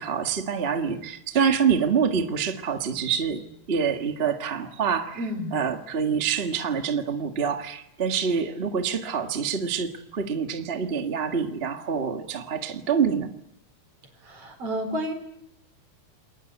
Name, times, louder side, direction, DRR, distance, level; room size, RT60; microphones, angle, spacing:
voice 1, 0.0-3.4 3.7-5.2 5.5-13.3, right 6 dB, 30° right, 5 dB, 1.2 m, -26 dB
voice 2, 5.2-5.6 14.2-15.1, equal, 50° right, 6 dB, 5.4 m, -31 dB
28.5 x 22.0 x 8.2 m, 0.77 s
omnidirectional pair, 3.6 m